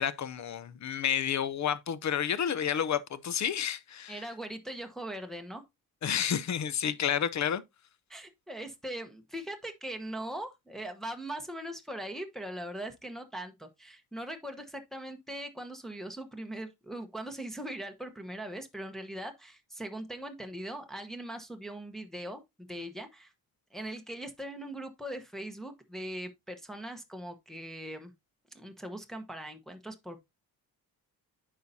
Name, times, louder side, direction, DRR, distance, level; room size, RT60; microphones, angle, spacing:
voice 1, 0.0-4.2 6.0-7.6, left 8 dB, 50° left, 0.7 m, -30 dB
voice 2, 4.1-5.6 8.1-23.3 23.7-28.1 28.5-30.2, right 1 dB, ahead, 1.0 m, -40 dB
9.3 x 5.6 x 2.7 m
cardioid pair, 115°, 37 cm